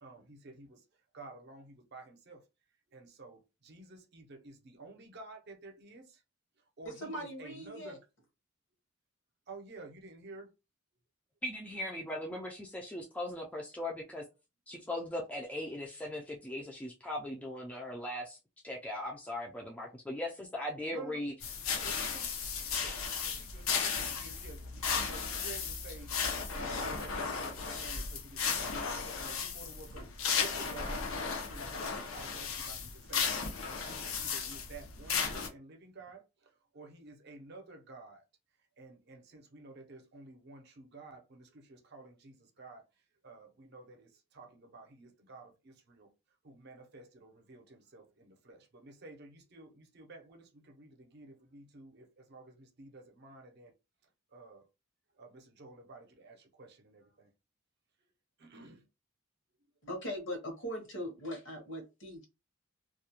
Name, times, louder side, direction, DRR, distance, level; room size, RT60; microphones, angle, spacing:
voice 1, 0.0-0.8 1.1-2.4 2.9-6.2 6.8-8.0 9.5-10.5 20.9-21.2 21.7-22.3 22.8-33.3 33.7-36.2 36.7-38.2 38.8-42.8 43.2-46.1 46.4-53.7 54.3-54.6 55.2-57.3 58.4-58.8, right 3 dB, 55° right, 0.6 m, -51 dB
voice 2, 6.8-8.0 59.8-62.3, equal, 65° left, 0.9 m, -40 dB
voice 3, 11.4-14.2 14.7-18.4 18.6-21.3, left 1 dB, 5° left, 0.3 m, -39 dB
sound 1, 21.4-35.5, left 5 dB, 90° left, 0.6 m, -35 dB
2.3 x 2.1 x 2.8 m
head